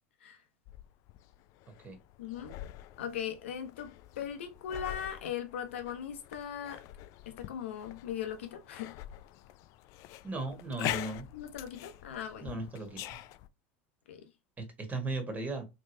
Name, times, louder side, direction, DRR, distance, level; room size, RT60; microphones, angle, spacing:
sound 1, 0.7-13.5, left 14 dB, 55° left, 0.3 m, -44 dB
voice 1, 2.2-2.6 3.0-6.8 7.3-8.9 11.3-12.5 14.1-14.3, left 9 dB, 80° left, 0.8 m, -39 dB
voice 2, 10.2-11.3 12.4-13.2 14.6-15.6, right 2 dB, 25° right, 1.5 m, -37 dB
3.4 x 3.1 x 2.7 m
hypercardioid pair, 85°, 7 cm